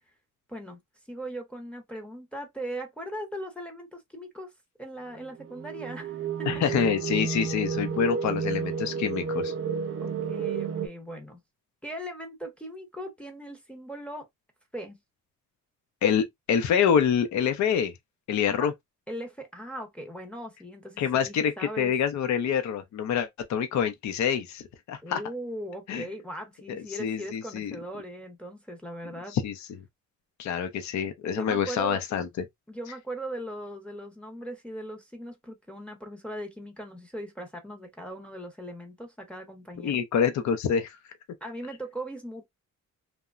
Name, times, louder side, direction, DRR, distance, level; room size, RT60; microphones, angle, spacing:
voice 1, 0.5-0.8 1.1-4.5 4.8-6.5 10.0-11.4 11.8-14.3 14.7-15.0 18.5-18.7 19.1-21.9 25.0-29.4 31.3-32.0 32.7-40.0 41.4-42.5, right 1 dB, 5° left, 0.7 m, -39 dB
sound 1, 5.4-10.9, right 6 dB, 45° right, 0.5 m, -31 dB
voice 2, 6.5-9.5 16.0-17.9 18.3-18.7 21.0-24.6 24.9-25.2 25.9-26.1 26.7-27.8 29.3-29.6 30.4-32.3 39.8-41.0, left 7 dB, 60° left, 0.6 m, -26 dB
2.9 x 2.2 x 2.4 m
cardioid pair, 150°, 31 cm